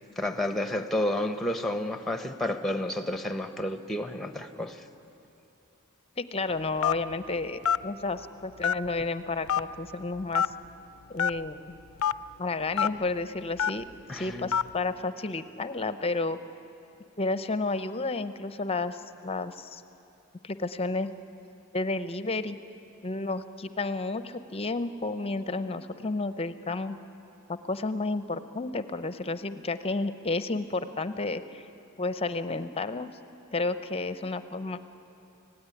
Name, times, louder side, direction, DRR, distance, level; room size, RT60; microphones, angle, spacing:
voice 1, 0.2-4.8 14.1-14.5, left 1 dB, ahead, 8 dB, 1.0 m, -30 dB
voice 2, 6.2-10.5 11.1-11.8 12.4-13.8 14.1-16.4 17.2-19.8 20.4-21.1 21.7-22.6 23.0-27.0 27.5-31.7 32.0-33.1 33.5-34.8, left 3 dB, 25° left, 12 dB, 0.7 m, -31 dB
Telephone, 6.8-7.1 7.6-7.8 8.6-9.0 9.5-9.6 10.3-10.5 11.2-11.3 12.0-12.1 12.8-12.9 13.6-13.8 14.5-14.7, left 8 dB, 70° left, 0.5 m, -24 dB
25.0 x 17.5 x 9.9 m, 2.8 s
head